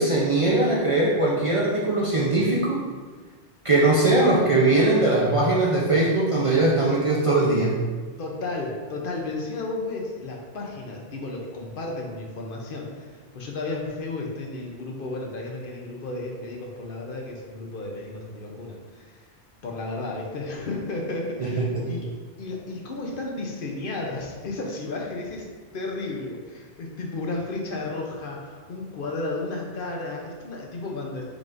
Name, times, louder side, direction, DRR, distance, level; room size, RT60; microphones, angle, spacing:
voice 1, 0.0-2.8 3.6-7.9 21.4-21.8, right 2 dB, 40° right, -6 dB, 0.5 m, -21 dB
voice 2, 8.2-19.3 19.6-22.1 22.4-25.5 25.7-31.2, left 2 dB, 60° left, 0 dB, 0.8 m, -33 dB
4.9 x 3.7 x 2.5 m, 1.5 s
omnidirectional pair, 1.1 m